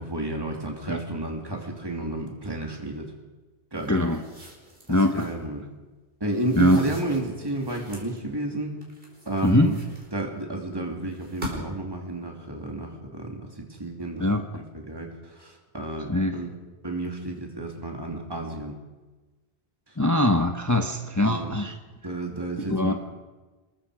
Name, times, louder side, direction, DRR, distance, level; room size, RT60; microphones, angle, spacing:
voice 1, 0.0-3.1 3.7-4.0 5.1-5.6 6.2-8.7 9.3-9.8 10.1-16.5 16.8-18.7 20.7-20.9 21.2-21.5 22.0-22.9, right 2 dB, 20° right, 1 dB, 2.9 m, -31 dB
sound 1, 3.8-5.4 6.3-8.2 8.8-10.4 11.1-11.9, equal, 55° right, 4.9 m, -41 dB
voice 2, 3.9-4.2 4.9-5.3 6.5-6.8 9.4-9.7 14.2-14.4 16.1-16.3 20.0-21.8 22.7-22.9, left 1 dB, 15° left, 5 dB, 1.1 m, -22 dB
26.5 x 21.0 x 5.0 m, 1.2 s
omnidirectional pair, 1.1 m